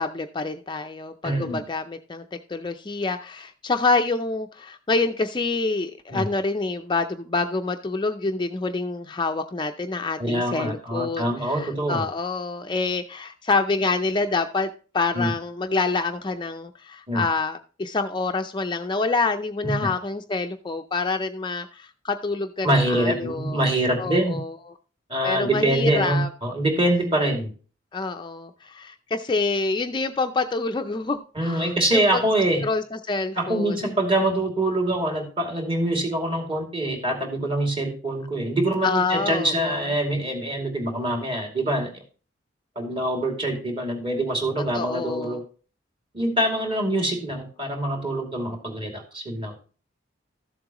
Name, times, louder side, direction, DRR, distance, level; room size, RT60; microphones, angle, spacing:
voice 1, 0.0-23.7 24.0-24.5 25.2-26.3 27.9-32.2 32.6-33.9 38.8-39.8 44.7-45.4, left 3 dB, 25° left, 6 dB, 0.5 m, -27 dB
voice 2, 1.2-1.6 6.1-6.3 10.2-12.0 15.1-15.3 17.1-17.2 19.6-19.9 22.6-24.4 25.1-27.5 31.3-32.6 33.4-41.9 42.8-45.4 46.1-49.5, right 1 dB, 30° right, 2 dB, 2.5 m, -24 dB
13.5 x 7.5 x 3.0 m, 0.37 s
head